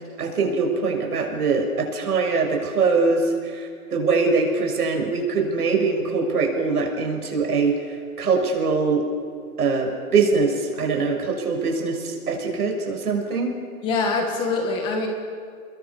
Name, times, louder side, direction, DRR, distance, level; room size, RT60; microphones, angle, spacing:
voice 1, 0.2-9.1 9.6-13.5, right 4 dB, 80° right, 3 dB, 6.5 m, -23 dB
voice 2, 13.8-15.1, left 3 dB, 10° left, 3 dB, 1.9 m, -24 dB
30.0 x 21.5 x 7.1 m, 2.3 s
hypercardioid pair, 180°, 45 cm